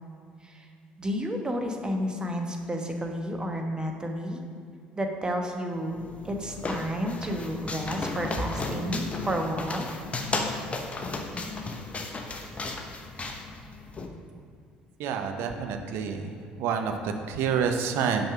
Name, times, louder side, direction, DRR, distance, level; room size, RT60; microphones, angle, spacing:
voice 1, 1.0-4.4 4.9-9.9, equal, 20° right, 3 dB, 1.1 m, -31 dB
sound 1, 5.9-14.1, left 3 dB, 30° left, 0.9 m, -34 dB
voice 2, 15.0-16.3 16.6-18.2, right 6 dB, 65° right, 5 dB, 0.7 m, -28 dB
5.5 x 5.3 x 5.9 m, 2.2 s
hypercardioid pair, 60°, 4 cm